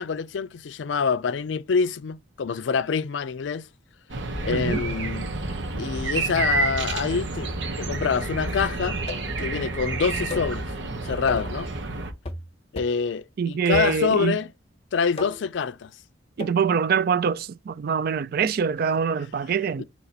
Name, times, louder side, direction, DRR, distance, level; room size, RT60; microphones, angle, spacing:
voice 1, 0.0-3.7 4.4-5.3 5.8-7.5 7.8-9.0 9.4-10.7 11.0-11.7 12.7-14.5 14.9-15.9 19.8-19.9, left 5 dB, 70° left, 0.4 m, -26 dB
sound 1, 4.1-12.1, right 3 dB, 70° right, 1.0 m, -29 dB
voice 2, 4.5-4.8 13.4-14.4 16.4-19.8, right 6 dB, 55° right, 0.3 m, -24 dB
sound 2, 9.1-9.4 10.3-10.6 11.3-11.6 12.2-12.5 12.8-13.1 13.7-14.3 15.2-15.6 16.4-16.6, left 3 dB, 35° left, 0.8 m, -36 dB
4.0 x 3.0 x 4.2 m
head